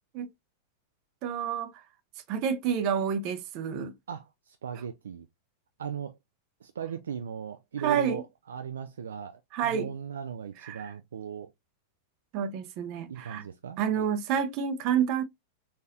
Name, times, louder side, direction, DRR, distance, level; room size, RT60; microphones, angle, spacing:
voice 1, 1.2-1.7 2.3-3.9 7.8-8.2 9.5-9.9 10.6-10.8 12.3-13.4 13.8-15.2, right 8 dB, 50° right, 0.7 m, -29 dB
voice 2, 4.1-5.3 5.8-6.2 6.6-11.5 13.1-14.1, right 8 dB, 75° right, 0.4 m, -38 dB
3.9 x 2.6 x 2.6 m
hypercardioid pair, 95°, 0 cm